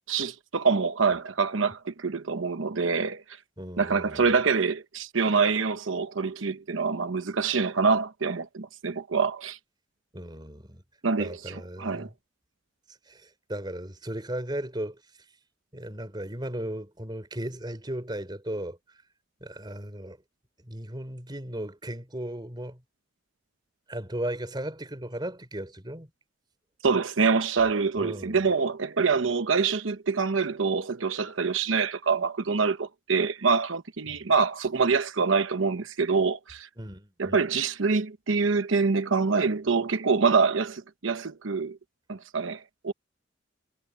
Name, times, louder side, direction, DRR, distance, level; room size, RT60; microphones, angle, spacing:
voice 1, 0.1-3.2 3.8-9.6 11.0-12.1 26.8-36.7 37.2-41.8 42.1-42.9, right 5 dB, 85° right, 1.0 m, -25 dB
voice 2, 3.6-4.3 10.1-10.8 11.2-12.1 13.1-15.0 15.7-18.8 19.4-20.2 20.6-22.8 23.9-26.1 27.9-28.4 34.1-34.2 36.8-37.4, right 1 dB, 20° right, 3.7 m, -36 dB
head